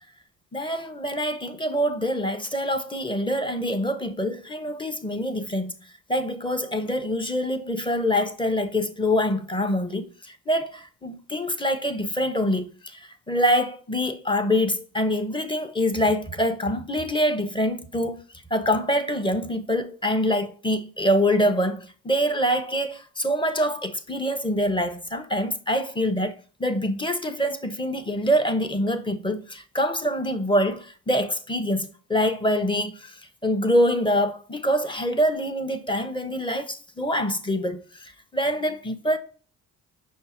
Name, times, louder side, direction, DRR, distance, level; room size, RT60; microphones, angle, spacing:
voice 1, 0.5-5.7 6.1-18.2 18.5-39.2, equal, 15° left, 0.6 m, -25 dB
5.4 x 2.1 x 4.2 m
supercardioid pair, 60°, 35 cm